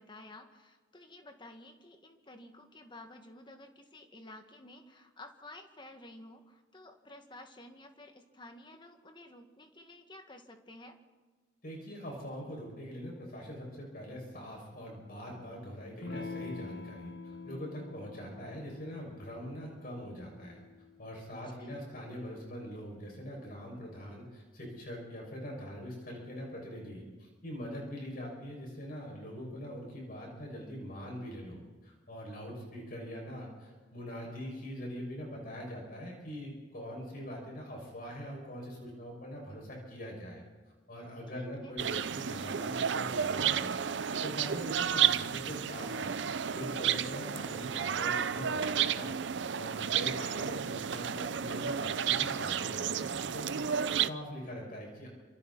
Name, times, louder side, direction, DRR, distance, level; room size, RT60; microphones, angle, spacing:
voice 1, 0.0-11.0 21.3-21.8 41.3-41.7 50.2-50.5, left 1 dB, 25° left, 5 dB, 1.9 m, -52 dB
voice 2, 11.6-20.6 21.0-40.4 40.9-43.8 44.2-49.2 49.5-55.1, equal, 50° left, -1 dB, 6.2 m, -43 dB
Electric guitar / Strum, 16.0-21.1, left 3 dB, 65° left, 1.5 m, -46 dB
sound 1, 41.8-54.1, right 8 dB, 70° right, 0.5 m, -32 dB
28.0 x 26.5 x 4.2 m, 1.3 s
head